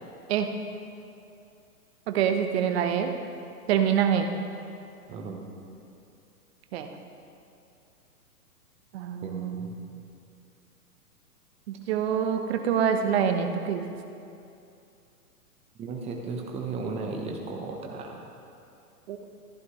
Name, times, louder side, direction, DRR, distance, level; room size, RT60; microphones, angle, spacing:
voice 1, 2.1-3.1 3.7-4.3 6.7-6.9 8.9-9.9 11.7-13.9 19.1-19.2, right 8 dB, 40° right, 6 dB, 0.9 m, -26 dB
voice 2, 9.2-9.8 15.8-18.2, right 4 dB, 15° right, 1 dB, 0.9 m, -35 dB
15.0 x 10.5 x 3.1 m, 2.6 s
hypercardioid pair, 140°, 47 cm